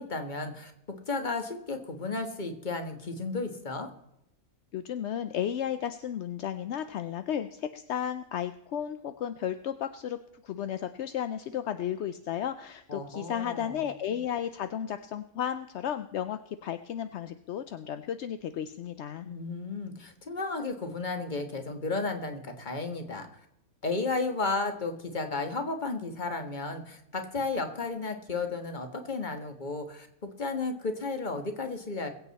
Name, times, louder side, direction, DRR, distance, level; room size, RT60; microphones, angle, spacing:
voice 1, 0.0-3.9 12.9-13.8 19.2-23.3 23.8-32.1, left 3 dB, 30° left, 6 dB, 1.6 m, -33 dB
voice 2, 4.7-10.2 10.4-19.3, left 9 dB, 60° left, 10 dB, 0.7 m, -33 dB
22.0 x 8.1 x 4.1 m, 0.82 s
omnidirectional pair, 1.6 m